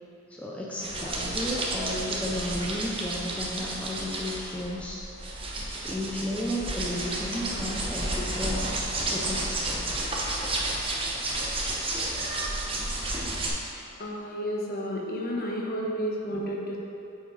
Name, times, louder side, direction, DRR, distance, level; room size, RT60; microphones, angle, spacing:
voice 1, 0.3-5.0 5.8-9.9, left 1 dB, 5° left, -5 dB, 0.6 m, -33 dB
sound 1, 0.8-13.5, right 2 dB, 25° right, 0.9 m, -31 dB
voice 2, 14.0-16.8, equal, 45° left, -2 dB, 1.1 m, -31 dB
8.8 x 4.8 x 4.0 m, 2.7 s
head